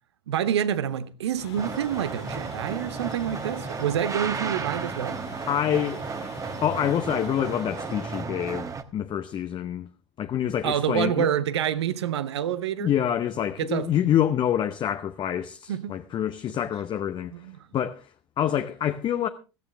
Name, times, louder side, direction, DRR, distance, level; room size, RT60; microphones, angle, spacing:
voice 1, 0.3-5.2 10.6-12.9 13.6-13.9 15.7-16.0 17.3-17.6, right 9 dB, 75° right, 0.9 m, -27 dB
sound 1, 1.4-8.2, left 7 dB, 70° left, 2.2 m, -44 dB
sound 2, 1.6-8.8, right 5 dB, 25° right, 1.2 m, -34 dB
voice 2, 5.5-9.9 10.2-11.3 12.8-17.5 17.7-19.3, left 10 dB, 35° left, 0.8 m, -27 dB
16.0 x 13.5 x 3.3 m
hypercardioid pair, 85°, 14 cm